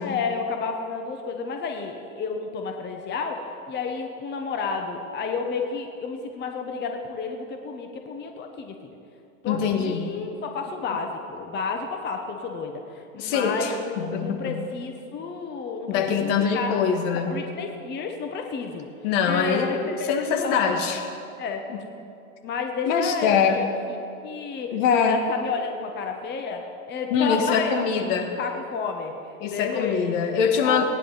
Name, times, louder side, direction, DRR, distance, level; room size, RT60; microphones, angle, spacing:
voice 1, 0.0-3.4 3.7-8.7 9.4-16.8 17.1-18.9 19.2-20.7 21.4-21.7 22.4-23.7 24.2-27.7 28.4-29.1 29.4-30.2 30.6-30.8, left 5 dB, 25° left, 4 dB, 1.1 m, -31 dB
voice 2, 9.5-10.2 13.2-14.7 15.9-17.4 19.0-21.1 21.7-21.8 22.9-23.7 24.7-25.2 27.1-28.4 29.4-30.8, left 6 dB, 60° left, 4 dB, 1.9 m, -24 dB
19.0 x 10.0 x 4.1 m, 2.7 s
hypercardioid pair, 115°, 42 cm